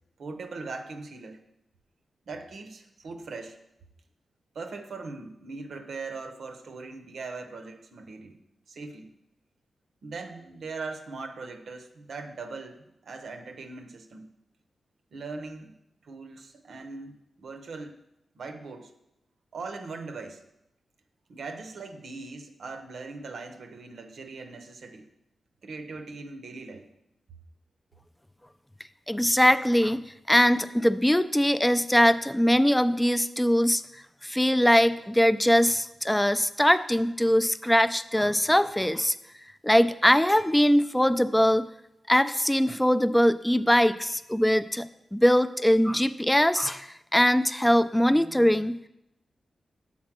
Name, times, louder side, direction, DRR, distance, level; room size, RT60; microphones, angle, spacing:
voice 1, 0.2-1.4 2.3-3.6 4.5-8.4 8.7-9.1 10.0-14.3 15.1-15.7 16.1-18.0 18.4-18.9 19.5-20.4 21.3-25.1 25.6-26.9, right 3 dB, 80° right, 5 dB, 0.7 m, -40 dB
voice 2, 29.1-30.0 30.3-33.8 34.2-39.1 39.6-41.7 42.1-48.8, equal, 10° left, 13 dB, 0.4 m, -22 dB
7.4 x 4.2 x 6.0 m, 0.86 s
cardioid pair, 65°, 0 cm